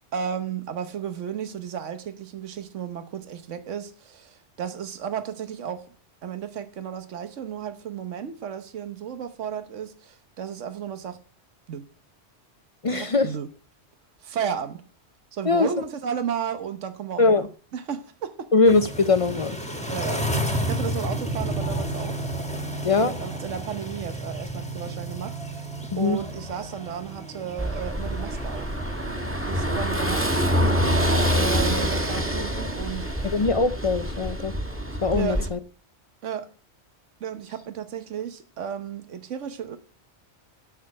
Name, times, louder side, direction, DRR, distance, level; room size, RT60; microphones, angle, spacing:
voice 1, 0.0-5.9 6.2-11.2 11.7-11.8 12.9-13.5 14.2-14.8 15.3-17.5 17.7-18.5 19.9-22.2 22.9-28.7 29.5-33.1 35.1-35.5 36.2-36.5 37.2-39.8, right 8 dB, 85° right, 1.3 m, -33 dB
voice 2, 12.8-13.3 15.5-15.7 17.2-17.5 18.5-19.6 22.8-23.1 25.9-26.2 33.3-34.5 35.0-35.6, left 3 dB, 40° left, 0.5 m, -21 dB
sound 1, 18.7-33.4, right 1 dB, 5° left, 1.5 m, -33 dB
Car passing by / Engine, 27.6-35.5, equal, 10° right, 1.7 m, -26 dB
12.5 x 6.0 x 8.6 m
omnidirectional pair, 1.2 m